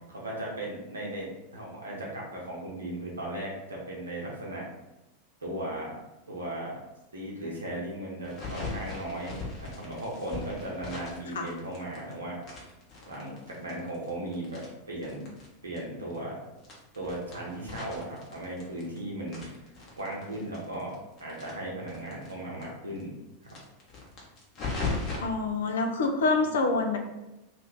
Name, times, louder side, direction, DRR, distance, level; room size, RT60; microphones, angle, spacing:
voice 1, 0.1-4.7 5.4-5.9 6.3-6.8 7.1-12.4 13.1-15.2 15.6-16.4 16.9-19.7 20.0-20.9 21.2-23.1 23.4-23.6, right 1 dB, 75° right, -3 dB, 0.9 m, -37 dB
sound 1, 8.2-12.1 12.4-15.5 15.7-15.8 16.1-16.2 16.6-19.0 19.3-22.3 22.6-22.7 23.0-23.1 23.4-25.2, left 3 dB, 35° left, 0.9 m, -38 dB
voice 2, 25.2-27.0, left 3 dB, 65° left, 3 dB, 0.4 m, -26 dB
2.6 x 2.5 x 3.3 m, 0.97 s
figure-of-eight pair, 90°, 0 cm